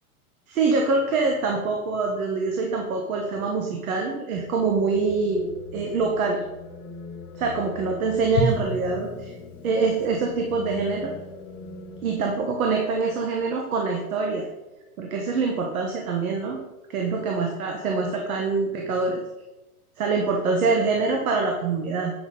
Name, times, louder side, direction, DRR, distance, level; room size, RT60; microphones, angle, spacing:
voice 1, 0.5-6.4 7.3-9.3 9.6-11.1 12.0-14.5 15.0-16.6 16.9-19.2 20.0-22.1, right 4 dB, 70° right, 1 dB, 1.3 m, -25 dB
sound 1, 4.3-12.4, left 4 dB, 60° left, 1.2 m, -41 dB
Drum, 8.4-11.3, equal, 80° left, 1.2 m, -32 dB
8.3 x 6.0 x 4.0 m, 1.0 s
supercardioid pair, 170°, 44 cm